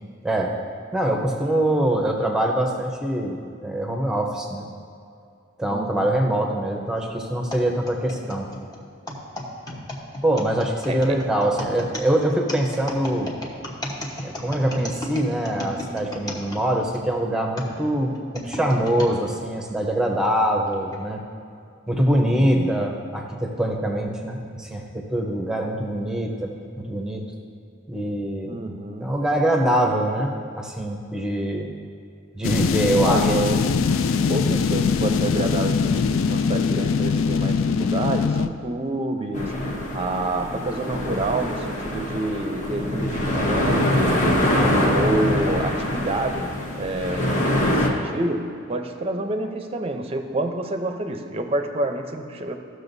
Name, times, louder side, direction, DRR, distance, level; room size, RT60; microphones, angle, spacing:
voice 1, 0.2-0.5 0.9-4.7 5.6-8.5 10.2-13.3 14.2-21.2 21.9-27.2 27.9-28.6 29.0-31.7 32.3-33.3 44.6-44.9, right 1 dB, 5° right, 1 dB, 0.8 m, -24 dB
voice 2, 5.7-6.1 9.7-9.8 10.9-11.2 22.3-22.7 28.4-29.1 33.0-33.7 34.2-44.5 44.9-52.6, right 2 dB, 30° right, 6 dB, 0.6 m, -28 dB
sound 1, 7.5-17.0 17.6-19.2 19.8-19.9 20.7-21.0, left 1 dB, 20° left, 1.0 m, -34 dB
sound 2, 32.4-38.5, left 5 dB, 85° left, 0.4 m, -22 dB
sound 3, 39.3-47.9, left 1 dB, 35° left, 1.2 m, -24 dB
15.0 x 6.4 x 2.7 m, 2.4 s
head